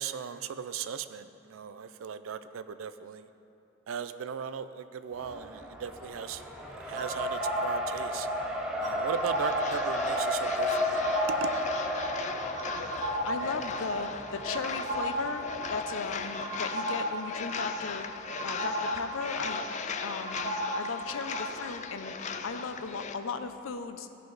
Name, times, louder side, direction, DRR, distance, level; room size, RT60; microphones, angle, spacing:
voice 1, 0.0-3.2 3.9-6.4 6.8-8.3 8.8-11.1 11.4-11.5, right 7 dB, 85° right, 12 dB, 0.4 m, -37 dB
Race car auto racing, 5.2-16.2, equal, 5° right, 0.7 m, -34 dB
sound 1, 7.0-21.7, right 1 dB, 35° right, 0.8 m, -36 dB
sound 2, 9.2-23.1, left 5 dB, 35° left, 0.4 m, -38 dB
voice 2, 12.7-19.6 20.0-24.1, left 4 dB, 85° left, 9 dB, 0.6 m, -37 dB
15.5 x 5.5 x 3.9 m, 2.8 s
head